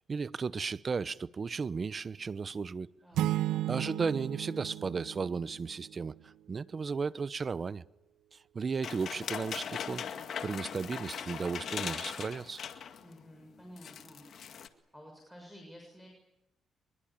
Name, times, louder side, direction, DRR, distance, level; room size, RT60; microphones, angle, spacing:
voice 1, 0.0-2.9 3.7-7.8 8.3-10.1 10.4-12.6, right 5 dB, 35° right, 0.9 m, -35 dB
sound 1, 3.1-6.0, right 14 dB, 90° right, 0.9 m, -34 dB
sound 2, 8.8-13.1 13.4-13.5 13.8-14.7, left 8 dB, 60° left, 2.1 m, -39 dB
voice 2, 13.0-14.3 14.9-16.1, equal, 5° left, 6.7 m, -52 dB
24.0 x 22.0 x 8.8 m
cardioid pair, 90°, 0 cm